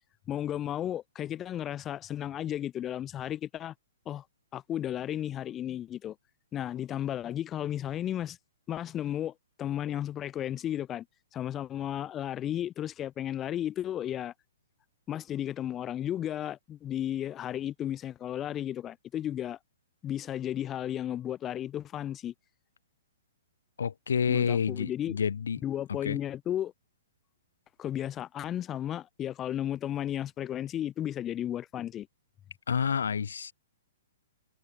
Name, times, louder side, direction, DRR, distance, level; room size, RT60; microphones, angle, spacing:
voice 1, 0.3-3.7 4.1-4.2 4.5-6.2 6.5-8.4 8.7-11.1 11.3-14.3 15.1-19.6 20.0-22.3 24.3-25.2 25.6-26.7 27.8-32.1, left 11 dB, 15° left, 7.2 m, -34 dB
voice 2, 23.8-25.6 26.0-26.2 32.7-33.5, left 7 dB, 90° left, 6.5 m, -28 dB
hypercardioid pair, 165°, 0 cm